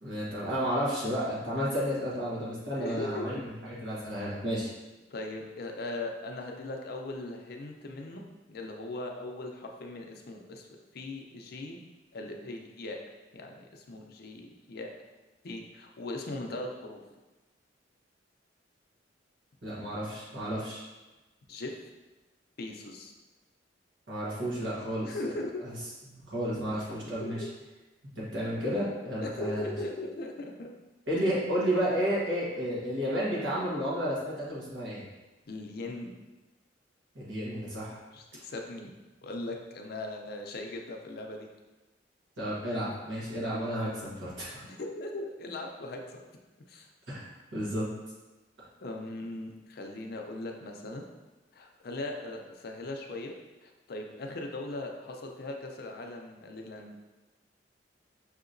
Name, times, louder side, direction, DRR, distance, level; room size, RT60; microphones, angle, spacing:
voice 1, 0.0-3.4 3.8-4.7 19.6-20.8 24.1-25.2 26.1-27.4 28.2-29.7 31.1-35.0 37.1-38.0 42.4-44.6 47.1-47.2 47.5-47.9, equal, 85° right, -7 dB, 1.3 m, -32 dB
voice 2, 2.7-3.4 5.1-10.7 10.9-11.8 12.1-13.0 13.3-14.9 15.4-17.0 21.5-21.7 22.6-23.1 25.0-25.6 27.2-27.3 29.2-30.7 35.5-36.1 38.1-38.9 39.2-41.5 44.6-46.2 46.7-46.9 48.8-51.0 51.5-53.3 53.6-57.0, left 2 dB, 60° left, 2 dB, 0.5 m, -39 dB
5.9 x 2.8 x 2.6 m, 1.1 s
head